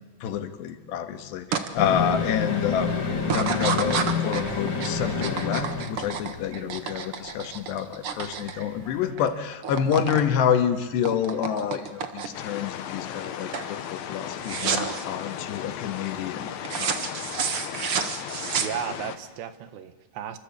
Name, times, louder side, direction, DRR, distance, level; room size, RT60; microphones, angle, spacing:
voice 1, 0.2-2.9 3.3-16.5 16.7-17.4, left 8 dB, 90° left, 8 dB, 3.8 m, -28 dB
sound 1, 1.5-1.7 2.1-2.6 3.2-9.3 9.5-10.3 10.5-12.5 13.0-13.3 13.5-13.7 14.4-15.0 16.6-19.2, right 7 dB, 55° right, 1.5 m, -30 dB
sound 2, 1.8-6.8 7.1-7.2, left 5 dB, 30° left, 2.9 m, -28 dB
sound 3, 12.3-19.2, left 9 dB, 65° left, 3.0 m, -36 dB
voice 2, 18.6-20.4, right 9 dB, 85° right, 11 dB, 3.7 m, -35 dB
27.5 x 24.5 x 8.6 m, 1.2 s
omnidirectional pair, 4.8 m